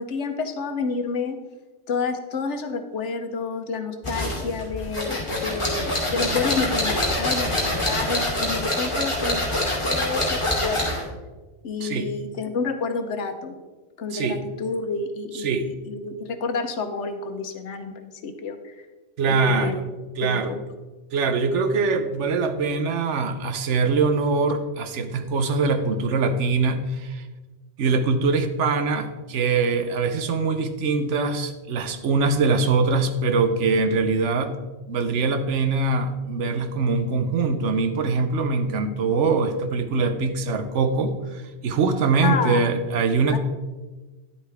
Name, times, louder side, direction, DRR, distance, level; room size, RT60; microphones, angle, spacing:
voice 1, 0.0-1.4 1.9-11.0 11.6-13.5 14.0-18.8 19.3-19.8 20.2-20.6 42.2-42.6 43.3-43.4, left 4 dB, 70° left, 8 dB, 1.1 m, -29 dB
sound 1, 4.0-11.0, left 1 dB, 25° left, 2.6 m, -25 dB
voice 2, 19.2-19.8 20.2-20.5 21.1-27.2 27.8-34.5 34.9-43.4, right 4 dB, 75° right, 9 dB, 1.1 m, -23 dB
10.0 x 8.1 x 3.4 m, 1.2 s
omnidirectional pair, 1.2 m